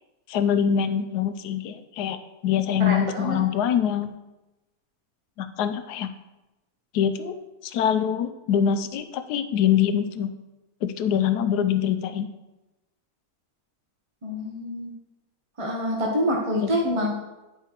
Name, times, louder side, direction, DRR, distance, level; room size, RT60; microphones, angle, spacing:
voice 1, 0.3-2.2 2.4-4.2 5.4-6.1 6.9-7.3 7.6-10.3 10.8-12.3 16.6-16.7, left 9 dB, 90° left, 10 dB, 1.1 m, -24 dB
voice 2, 2.8-3.4 14.2-14.9 15.6-17.1, equal, 25° right, -2 dB, 0.8 m, -26 dB
9.5 x 5.6 x 3.0 m, 1.0 s
omnidirectional pair, 1.7 m